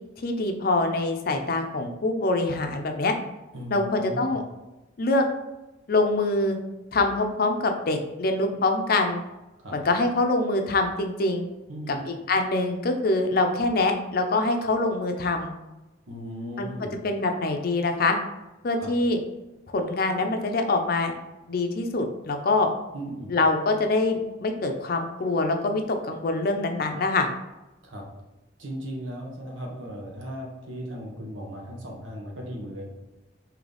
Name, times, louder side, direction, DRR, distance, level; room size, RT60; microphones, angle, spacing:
voice 1, 0.2-3.1 3.7-4.4 5.0-5.3 5.9-6.6 6.9-9.2 9.7-11.5 11.9-15.5 16.6-16.7 17.0-18.2 18.6-19.2 19.7-21.1 21.5-22.7 23.3-27.3, left 2 dB, 50° left, 5 dB, 0.5 m, -24 dB
voice 2, 3.5-4.3 9.6-9.8 11.7-12.0 16.1-16.9 18.8-18.9 22.9-23.3 27.8-28.0 28.6-32.9, equal, 90° right, 0 dB, 1.0 m, -36 dB
3.8 x 2.8 x 3.3 m, 1.0 s
head